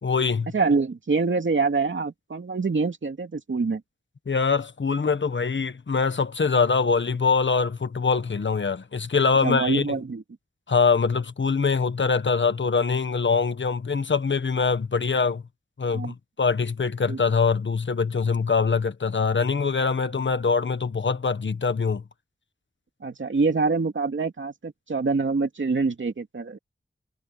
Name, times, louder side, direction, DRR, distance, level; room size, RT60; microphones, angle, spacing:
voice 1, 0.0-0.5 4.3-10.0 10.7-15.4 15.8-22.0, left 5 dB, 75° left, 1.3 m, -23 dB
voice 2, 0.5-3.8 9.4-10.2 15.9-16.1 17.1-17.2 23.0-26.6, right 4 dB, 85° right, 2.6 m, -25 dB
wide cardioid pair, 75°, 19 cm